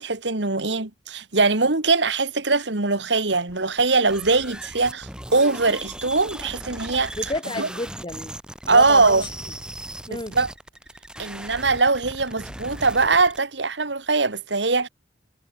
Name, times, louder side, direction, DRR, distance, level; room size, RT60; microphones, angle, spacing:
voice 1, 0.0-7.1 7.6-7.7 8.7-9.2 10.3-10.5 11.2-14.9, right 3 dB, 90° right, 2.5 m, -21 dB
sound 1, 3.5-13.4, right 1 dB, 5° right, 2.5 m, -38 dB
voice 2, 7.2-8.4 8.6-9.3 10.1-10.4, left 2 dB, 30° left, 5.2 m, -30 dB
head